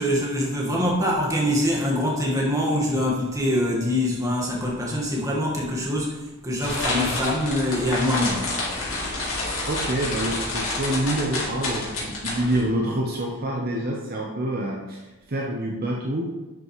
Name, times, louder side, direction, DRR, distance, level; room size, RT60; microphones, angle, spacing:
voice 1, 0.0-8.6, left 1 dB, 15° right, -3 dB, 1.5 m, -24 dB
sound 1, 6.6-12.6, left 2 dB, 60° left, 2.7 m, -29 dB
voice 2, 9.6-16.3, right 1 dB, 45° right, -2 dB, 0.8 m, -27 dB
10.5 x 5.7 x 3.1 m, 1.1 s
head